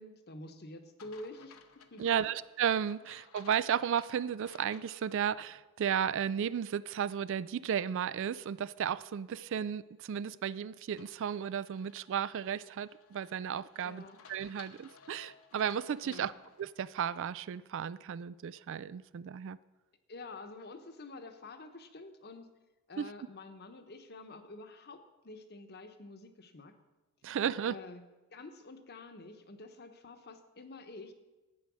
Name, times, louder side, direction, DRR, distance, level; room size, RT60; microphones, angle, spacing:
voice 1, 0.0-1.6 1.9-2.3 13.8-14.2 16.0-16.3 20.1-22.5 22.9-26.7 27.7-28.0 28.3-31.1, left 2 dB, 45° left, 7 dB, 1.0 m, -48 dB
sound 1, 1.0-5.5 5.9-6.0 11.0-17.3, left 6 dB, 70° left, 1.0 m, -59 dB
voice 2, 2.0-16.3 16.6-19.6 23.0-23.1 27.2-27.8, right 8 dB, 55° right, 18 dB, 0.3 m, -34 dB
12.0 x 8.9 x 6.2 m, 1.1 s
head